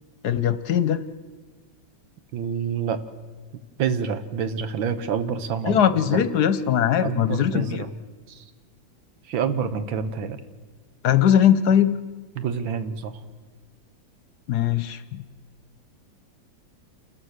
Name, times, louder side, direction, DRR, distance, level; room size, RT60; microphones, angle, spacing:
voice 1, 0.2-1.0 5.6-7.9 11.0-12.0 14.5-15.2, left 9 dB, 65° left, 14 dB, 1.2 m, -20 dB
voice 2, 2.3-3.0 3.8-5.8 6.1-6.2 7.0-7.9 8.3-8.4 9.3-10.4 12.4-13.1, right 7 dB, 90° right, 11 dB, 1.9 m, -27 dB
28.5 x 14.0 x 6.5 m, 1.3 s
omnidirectional pair, 2.1 m